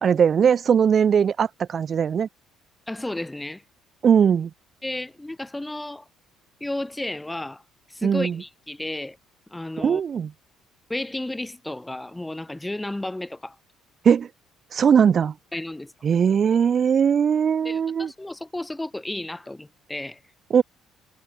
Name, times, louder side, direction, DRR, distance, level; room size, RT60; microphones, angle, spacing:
voice 1, 0.0-2.3 4.0-4.5 8.0-8.4 9.8-10.3 14.0-14.3 14.7-15.3 16.0-18.1 20.5-20.6, right 7 dB, 45° right, 1.0 m, -19 dB
voice 2, 2.9-3.6 4.8-6.0 6.6-7.6 7.9-9.2 9.5-10.0 10.9-13.5 15.5-15.9 17.6-20.2, left 1 dB, 10° left, 5.1 m, -32 dB
hypercardioid pair, 55°, 0 cm